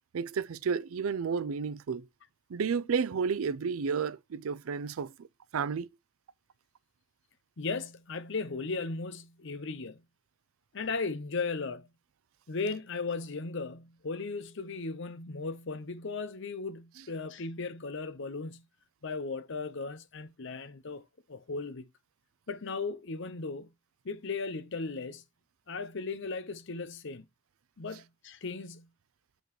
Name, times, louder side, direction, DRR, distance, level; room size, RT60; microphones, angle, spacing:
voice 1, 0.1-2.0 2.5-5.1 5.5-5.9, right 6 dB, 85° right, 0.4 m, -31 dB
voice 2, 7.6-10.0 10.7-11.9 12.5-18.6 19.0-21.8 22.5-23.7 24.0-25.2 25.7-27.2 27.8-28.9, left 4 dB, 60° left, 0.7 m, -36 dB
7.7 x 5.2 x 3.0 m
head